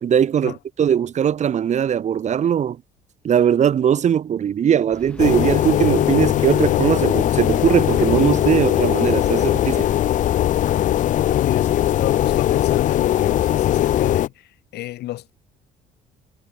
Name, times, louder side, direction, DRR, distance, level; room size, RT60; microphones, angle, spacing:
voice 1, 0.0-2.8 3.2-9.9, right 9 dB, 45° right, 1.1 m, -20 dB
sound 1, 4.9-10.0, left 1 dB, 5° left, 7.2 m, -42 dB
sound 2, 5.2-14.3, left 12 dB, 50° left, 0.5 m, -19 dB
voice 2, 11.2-14.5 14.7-15.3, left 15 dB, 75° left, 5.3 m, -30 dB
cardioid pair, 110°, 17 cm